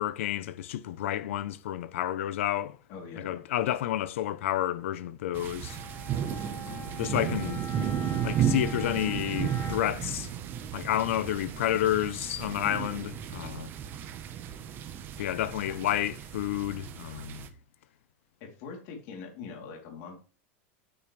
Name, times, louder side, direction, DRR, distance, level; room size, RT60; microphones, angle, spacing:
voice 1, 0.0-2.8 3.2-5.8 6.7-7.6 8.2-10.3 10.7-13.7 15.2-17.4, left 12 dB, 80° left, 0.8 m, -30 dB
voice 2, 2.9-3.4 15.1-15.4 18.4-20.2, left 5 dB, 50° left, 3.4 m, -43 dB
sound 1, 5.3-17.5, right 9 dB, 30° right, 1.1 m, -34 dB
Bowed string instrument, 5.6-10.1, equal, 20° left, 2.3 m, -44 dB
9.0 x 8.8 x 3.4 m
supercardioid pair, 155°, 7 cm